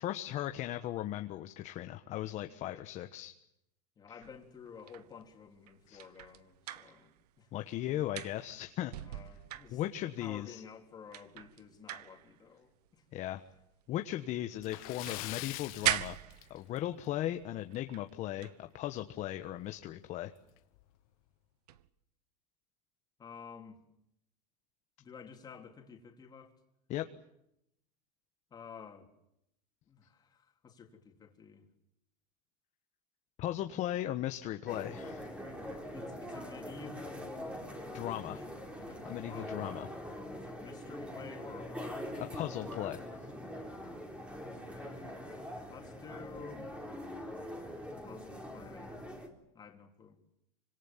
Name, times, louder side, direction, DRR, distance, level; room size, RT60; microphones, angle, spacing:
voice 1, 0.0-3.3 5.9-6.0 7.5-8.9 9.7-10.6 13.1-13.4 13.9-16.2 16.5-20.3 26.9-27.1 33.4-35.3 37.9-38.4 39.0-39.9 42.2-43.0, left 13 dB, 35° left, 1.3 m, -37 dB
voice 2, 4.0-7.1 7.4-7.7 9.0-13.0 23.2-23.8 25.0-26.6 28.5-29.1 29.9-31.7 35.9-39.8 40.3-42.0 44.7-46.7 48.0-49.0 49.5-50.2, left 5 dB, 20° left, 3.7 m, -52 dB
sound 1, 4.2-7.6 7.8-10.3 10.8-10.9 11.1-14.4 14.7-17.0 17.7-18.1 18.4-18.6 21.7-21.9, right 13 dB, 85° right, 1.4 m, -40 dB
Splash splatter, 14.6-16.9 17.3-17.4 17.9-18.0 19.4-19.5 19.8-19.9 20.6-20.8, left 21 dB, 60° left, 1.4 m, -43 dB
sound 2, 34.7-49.3, equal, 5° right, 3.8 m, -43 dB
27.0 x 25.5 x 7.4 m
supercardioid pair, 150°, 20 cm